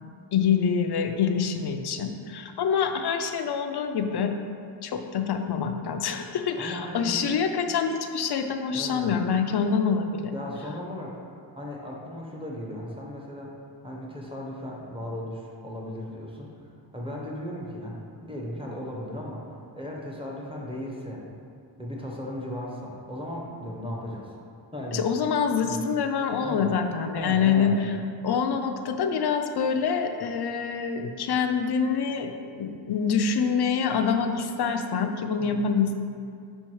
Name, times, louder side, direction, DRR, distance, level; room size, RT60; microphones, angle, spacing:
voice 1, 0.3-4.3 4.8-10.3 24.9-27.7 28.2-32.3 32.6-35.9, left 6 dB, 60° left, 6 dB, 0.5 m, -26 dB
voice 2, 6.6-7.1 8.7-9.2 10.3-11.1 11.6-13.5 13.8-16.5 16.9-19.5 19.8-21.2 21.8-24.3 24.7-25.0 25.6-25.8 26.4-26.7 27.1-27.8 35.4-35.7, left 1 dB, 15° right, -3 dB, 0.7 m, -36 dB
4.5 x 4.4 x 4.7 m, 2.4 s
wide cardioid pair, 180°, 44 cm